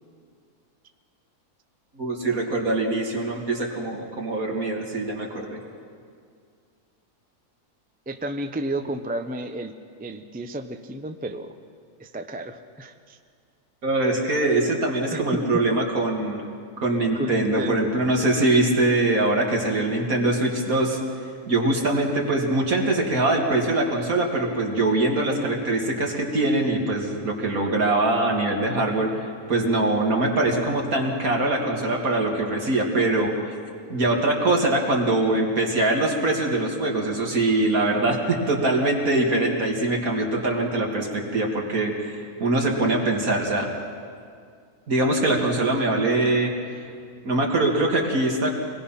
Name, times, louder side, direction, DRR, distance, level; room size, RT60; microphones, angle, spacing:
voice 1, 1.9-5.6 13.8-16.4 16.8-21.0 21.5-33.6 33.9-43.7 44.9-46.5 47.2-48.5, right 2 dB, 65° right, 0 dB, 2.8 m, -23 dB
voice 2, 8.1-9.7 10.0-11.5 12.0-13.2 15.1-15.8 17.1-17.9, right 1 dB, 10° right, 7 dB, 0.4 m, -32 dB
25.0 x 19.5 x 5.8 m, 2.2 s
omnidirectional pair, 1.6 m